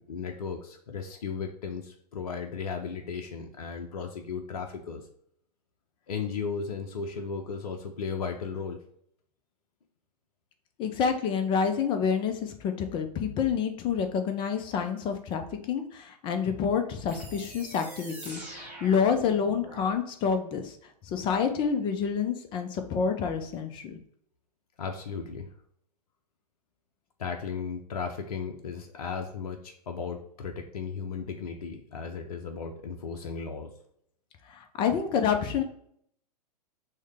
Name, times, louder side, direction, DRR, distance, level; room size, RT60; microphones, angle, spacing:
voice 1, 0.0-5.1 6.1-8.8 24.8-25.5 27.2-33.7, left 5 dB, 60° left, 3 dB, 0.6 m, -35 dB
voice 2, 10.8-20.8 21.0-24.0 34.5-35.6, left 6 dB, 25° left, 6 dB, 0.5 m, -28 dB
sound 1, 17.1-19.9, right 2 dB, 10° right, 1.7 m, -44 dB
6.2 x 2.2 x 3.4 m, 0.67 s
figure-of-eight pair, 105°, 21 cm